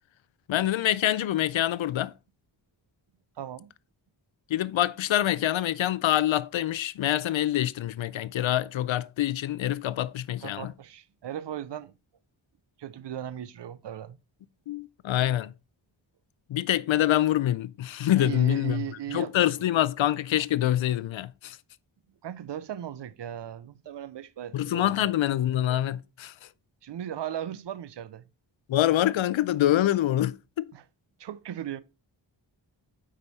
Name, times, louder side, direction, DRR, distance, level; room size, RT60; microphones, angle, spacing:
voice 1, 0.5-2.1 4.5-10.7 14.7-15.5 16.5-18.8 19.1-21.6 24.5-26.3 28.7-30.7, left 13 dB, 75° left, 0.6 m, -25 dB
voice 2, 3.4-3.7 10.4-11.9 12.8-14.2 18.1-19.3 22.2-25.0 26.8-28.2 30.7-30.8 31.2-31.8, right 11 dB, 65° right, 0.6 m, -37 dB
8.5 x 5.1 x 4.1 m
wide cardioid pair, 155°, 46 cm